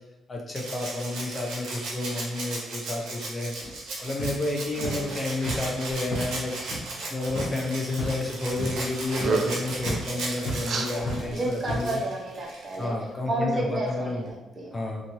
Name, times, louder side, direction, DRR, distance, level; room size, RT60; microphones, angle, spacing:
voice 1, 0.3-3.7 4.0-6.5 7.1-12.0 12.8-14.3 14.7-15.0, left 2 dB, 25° left, 0 dB, 0.6 m, -30 dB
Rattle (instrument), 0.5-12.9 14.3-14.4, right 2 dB, 85° right, 0.7 m, -36 dB
sound 1, 3.6-6.9 7.2-7.6 7.8-8.2 8.5-10.7 10.9-11.8, equal, 75° left, 0.8 m, -35 dB
voice 2, 4.8-5.1 10.9-12.9 13.3-14.7, right 2 dB, 35° right, -2 dB, 0.8 m, -31 dB
sound 2, 8.6-8.8 9.1-9.8 10.6-10.9, right 4 dB, 60° right, 0.3 m, -28 dB
2.6 x 2.5 x 2.9 m, 1.0 s
cardioid pair, 90°, 0 cm